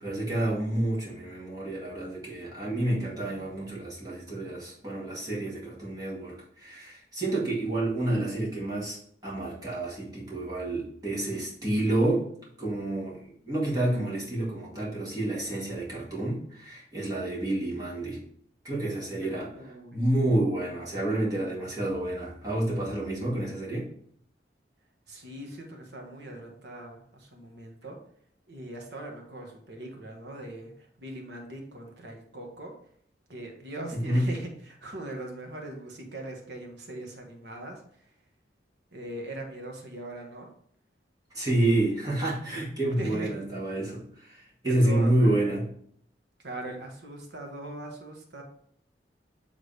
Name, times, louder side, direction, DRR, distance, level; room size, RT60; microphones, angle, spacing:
voice 1, 0.0-9.0 9.2-12.2 12.6-18.2 18.6-23.8 34.0-34.3 41.3-45.6, right 1 dB, 20° right, -6 dB, 2.1 m, -29 dB
voice 2, 19.5-20.0 25.1-28.0 28.5-32.7 33.3-38.2 38.9-40.5 42.4-42.6 43.0-43.3 44.7-45.4 46.4-48.4, right 1 dB, 70° right, 1 dB, 1.3 m, -40 dB
8.1 x 3.6 x 3.3 m, 0.63 s
head